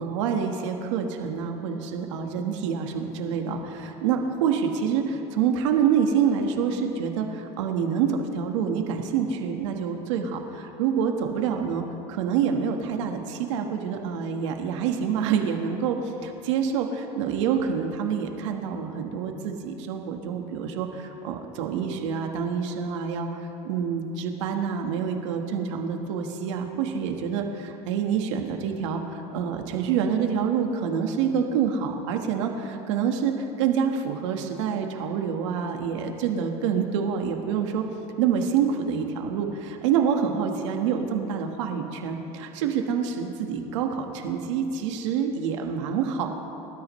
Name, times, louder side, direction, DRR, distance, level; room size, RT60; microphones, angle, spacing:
voice 1, 0.0-11.8 12.1-23.3 23.6-37.8 38.2-46.3, right 7 dB, 90° right, 3 dB, 1.5 m, -27 dB
29.5 x 13.0 x 3.2 m, 3.0 s
supercardioid pair, 120°, 15 cm